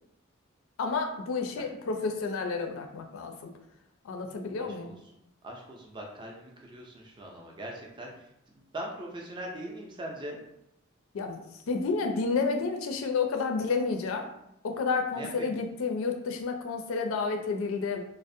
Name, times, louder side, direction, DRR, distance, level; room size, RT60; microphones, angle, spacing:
voice 1, 0.8-3.5 4.0-4.9 11.1-14.3 14.6-18.0, left 4 dB, 70° left, 4 dB, 0.4 m, -30 dB
voice 2, 4.6-4.9 5.4-10.4 15.1-15.6, right 1 dB, 20° right, 0 dB, 0.4 m, -41 dB
2.5 x 2.0 x 2.5 m, 0.79 s
head